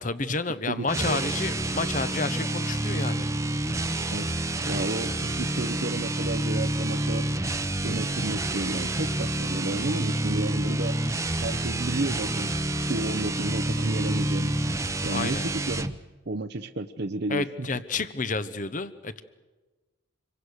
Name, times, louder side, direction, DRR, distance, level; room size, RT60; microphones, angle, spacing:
voice 1, 0.0-3.3 15.1-15.4 17.3-19.2, left 3 dB, 40° left, 13 dB, 1.0 m, -30 dB
voice 2, 0.7-1.2 4.1-4.3 4.7-7.3 7.8-11.0 11.4-12.5 12.9-14.6 15.0-15.9 16.3-17.7, right 2 dB, 50° right, 7 dB, 0.8 m, -32 dB
sound 1, 0.8-16.0, right 1 dB, 15° right, 0.9 m, -28 dB
27.5 x 23.5 x 6.6 m, 1.2 s
head